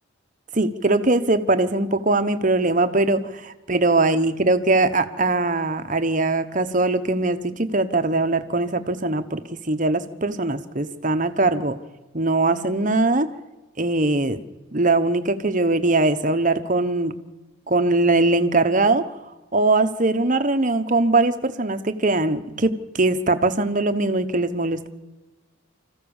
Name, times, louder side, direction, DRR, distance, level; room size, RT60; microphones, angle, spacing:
voice 1, 0.5-11.7 12.1-13.3 13.8-14.4 14.7-17.1 17.7-19.1 19.5-24.9, right 2 dB, 40° right, 9 dB, 1.1 m, -21 dB
26.0 x 15.0 x 7.2 m, 1.1 s
head